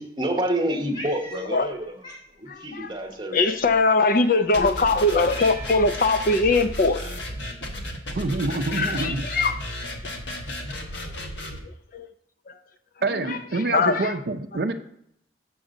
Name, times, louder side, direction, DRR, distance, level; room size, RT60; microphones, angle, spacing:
voice 1, 0.0-2.0 2.4-3.5, right 1 dB, 25° right, 2 dB, 0.9 m, -28 dB
Cat, 0.9-1.7 2.0-2.3 3.3-3.8 4.5-4.6 5.0-6.0, equal, 25° left, 0.9 m, -39 dB
voice 2, 2.5-2.9 3.3-7.0 8.7-9.6 11.9-12.1 12.5-12.6 13.3-13.4 13.7-14.0, left 3 dB, 50° left, 9 dB, 0.4 m, -21 dB
sound 1, 4.5-11.6, left 1 dB, 85° left, 1.2 m, -34 dB
voice 3, 8.1-9.3 13.0-14.7, right 3 dB, 55° right, 8 dB, 0.5 m, -26 dB
7.0 x 3.8 x 6.3 m, 0.72 s
head